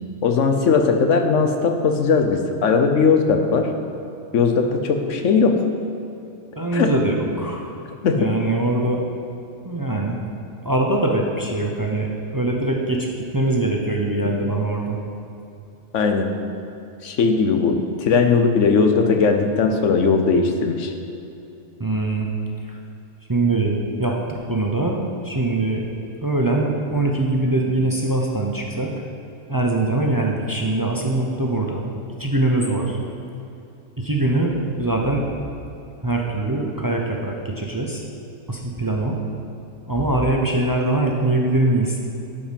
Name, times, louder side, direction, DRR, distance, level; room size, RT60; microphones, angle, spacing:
voice 1, 0.2-3.7 4.3-5.6 6.7-6.9 8.0-8.3 15.9-16.3 17.0-20.9, left 5 dB, 80° left, 5 dB, 1.2 m, -18 dB
voice 2, 6.6-7.8 8.2-9.0 9.6-10.2 10.6-15.0 21.8-22.3 22.7-22.8 23.3-24.2 24.5-25.0 25.2-25.8 26.2-28.9 29.5-31.9 32.2-33.0 34.0-35.3 36.0-38.0 38.5-39.2 39.9-42.0, right 2 dB, 20° right, 0 dB, 0.7 m, -22 dB
12.0 x 5.3 x 5.2 m, 2.7 s
omnidirectional pair, 1.2 m